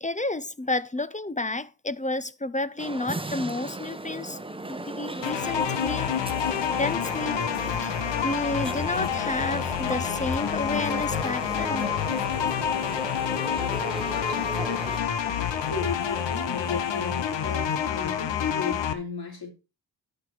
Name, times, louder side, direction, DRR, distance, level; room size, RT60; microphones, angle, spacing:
voice 1, 0.0-4.4 4.7-6.2 6.5-12.0 15.2-15.7, left 2 dB, 15° left, 0.7 m, -31 dB
sound 1, 2.8-15.0, right 2 dB, 10° right, 1.0 m, -37 dB
sound 2, 5.2-18.9, left 8 dB, 80° left, 1.1 m, -28 dB
voice 2, 15.6-19.5, left 4 dB, 60° left, 3.4 m, -36 dB
11.0 x 5.7 x 4.6 m
supercardioid pair, 40°, 43 cm